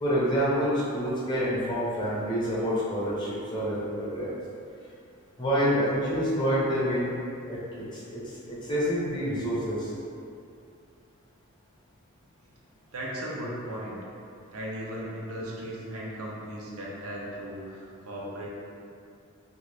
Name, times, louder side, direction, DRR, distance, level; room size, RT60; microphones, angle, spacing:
voice 1, 0.0-4.3 5.4-7.1 7.5-7.6 7.9-9.9, equal, 20° left, -7 dB, 0.7 m, -27 dB
voice 2, 12.9-14.0 14.5-18.5, equal, 80° right, -4 dB, 0.6 m, -37 dB
2.5 x 2.4 x 3.3 m, 2.5 s
head